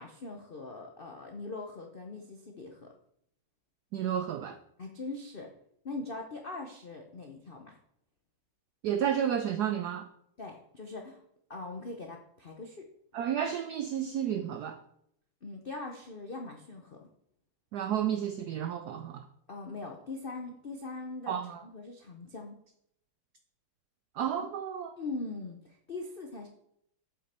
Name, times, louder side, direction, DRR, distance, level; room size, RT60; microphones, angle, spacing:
voice 1, 0.0-2.9 4.8-5.5 5.8-7.8 10.4-11.2 11.5-12.9 15.4-17.0 19.5-22.6 24.4-24.5 25.0-26.5, left 3 dB, 70° left, 2 dB, 0.5 m, -41 dB
voice 2, 3.9-4.6 8.8-10.1 13.1-14.8 17.7-19.3 21.3-21.6 24.2-24.9, right 9 dB, 80° right, 9 dB, 0.8 m, -31 dB
8.3 x 7.6 x 4.3 m, 0.72 s
omnidirectional pair, 2.3 m